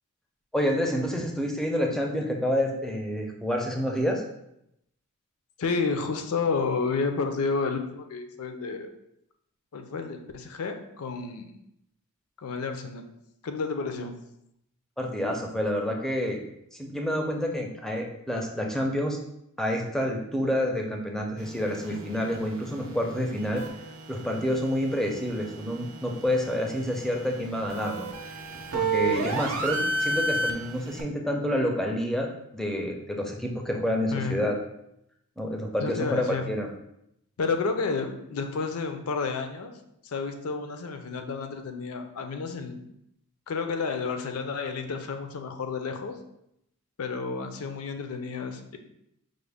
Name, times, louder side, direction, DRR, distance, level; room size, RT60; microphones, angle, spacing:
voice 1, 0.5-4.2 15.0-16.4 16.7-19.2 19.6-23.6 24.1-28.1 28.7-34.6 35.4-36.7, equal, ahead, 1 dB, 0.4 m, -28 dB
voice 2, 5.6-8.9 9.7-11.6 12.4-13.1 13.4-14.2 21.9-22.0 34.1-34.4 35.8-36.5 37.4-39.8 40.0-42.9 43.5-46.2 47.0-48.8, left 4 dB, 70° left, 6 dB, 0.5 m, -31 dB
sound 1, 21.4-31.0, right 3 dB, 65° right, 0.6 m, -33 dB
5.0 x 2.1 x 3.4 m, 0.79 s
head